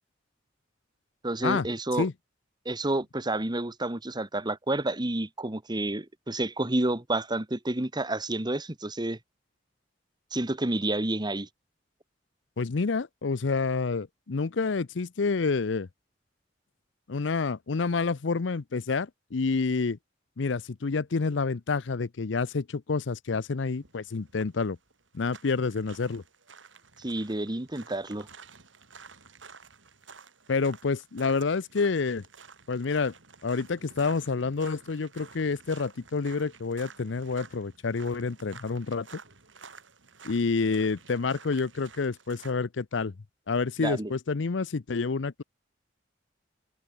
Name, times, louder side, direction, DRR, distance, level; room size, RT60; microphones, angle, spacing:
voice 1, 1.2-2.1 2.6-9.2 10.3-11.5 27.0-28.3 43.8-44.1, right 2 dB, 25° right, 1.6 m, -29 dB
voice 2, 12.6-15.9 17.1-20.0 20.4-24.8 25.1-26.2 30.5-32.2 32.7-33.1 33.4-39.1 40.2-43.1 43.5-45.4, left 4 dB, 70° left, 0.6 m, -28 dB
sound 1, 23.7-42.5, right 5 dB, 90° right, 6.7 m, -51 dB
head